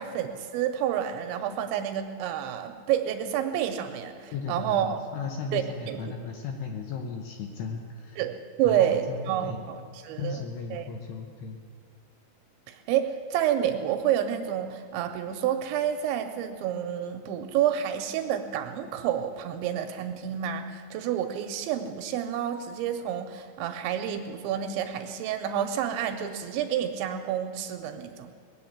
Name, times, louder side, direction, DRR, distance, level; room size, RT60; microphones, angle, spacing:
voice 1, 0.0-5.0 5.5-6.0 8.2-10.4 10.7-10.9 12.7-28.3, right 10 dB, 80° right, 6 dB, 2.8 m, -29 dB
voice 2, 4.3-8.2 8.6-9.6 10.2-11.6, left 5 dB, 75° left, 3 dB, 2.5 m, -36 dB
20.0 x 7.7 x 8.6 m, 2.1 s
omnidirectional pair, 5.7 m